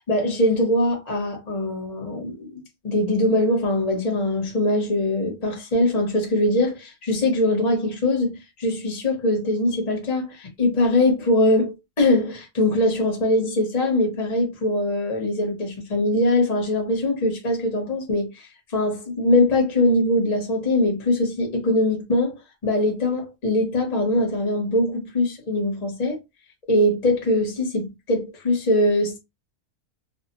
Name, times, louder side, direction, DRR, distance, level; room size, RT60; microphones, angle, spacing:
voice 1, 0.1-26.2 26.7-29.2, left 1 dB, 35° left, 0.8 m, -22 dB
2.5 x 2.0 x 2.8 m
omnidirectional pair, 1.6 m